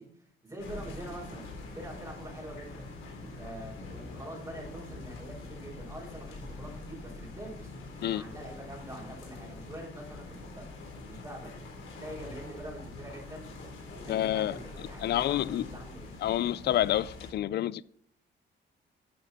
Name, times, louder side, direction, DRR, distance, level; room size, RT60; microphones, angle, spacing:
voice 1, 0.0-1.5 1.7-2.9 3.4-7.7 8.1-10.7 10.9-11.6 12.0-13.5 13.9-16.1, right 1 dB, 20° right, 5.1 m, -45 dB
sound 1, 0.6-17.3, left 2 dB, 85° left, 3.9 m, -44 dB
voice 2, 14.1-14.6 15.0-15.6 16.2-17.8, left 12 dB, 55° left, 0.4 m, -28 dB
12.0 x 7.1 x 4.3 m
cardioid pair, 90°, 20 cm